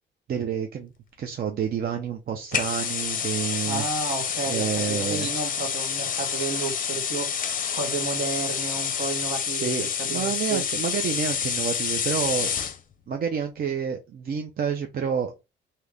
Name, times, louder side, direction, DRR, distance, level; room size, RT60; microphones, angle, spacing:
voice 1, 0.3-0.9 1.2-3.8 4.5-5.3 9.5-12.5 13.1-15.3, right 7 dB, 50° right, 0.5 m, -29 dB
sound 1, 2.5-12.8, left 7 dB, 45° left, 0.5 m, -28 dB
voice 2, 3.7-10.6, right 4 dB, 65° right, 1.4 m, -32 dB
2.8 x 2.4 x 3.3 m
cardioid pair, 90°, 20 cm